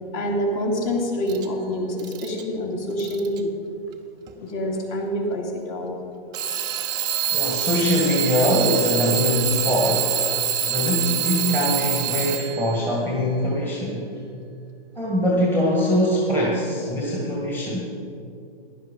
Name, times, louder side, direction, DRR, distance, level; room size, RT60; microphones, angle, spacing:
voice 1, 0.1-3.6 4.4-6.0, equal, 35° left, 1 dB, 2.6 m, -26 dB
Alarm / Clock, 1.3-1.4 2.0-2.4 3.0-3.4 4.3-4.4 6.3-12.7, right 9 dB, 15° right, 0.6 m, -25 dB
voice 2, 7.3-10.1 10.6-14.1 14.9-17.9, equal, 5° left, -4 dB, 1.6 m, -22 dB
15.5 x 11.0 x 5.3 m, 2.5 s
hypercardioid pair, 150°, 30 cm